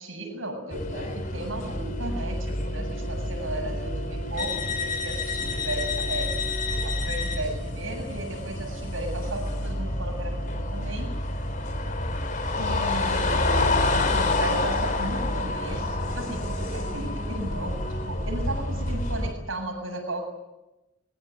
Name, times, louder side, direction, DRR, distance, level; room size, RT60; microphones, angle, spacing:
voice 1, 0.0-6.4 6.7-11.2 12.6-20.2, right 1 dB, 90° right, 4 dB, 7.6 m, -35 dB
sound 1, 0.7-19.3, left 2 dB, 40° left, 3.7 m, -28 dB
25.0 x 21.5 x 9.4 m, 0.97 s
head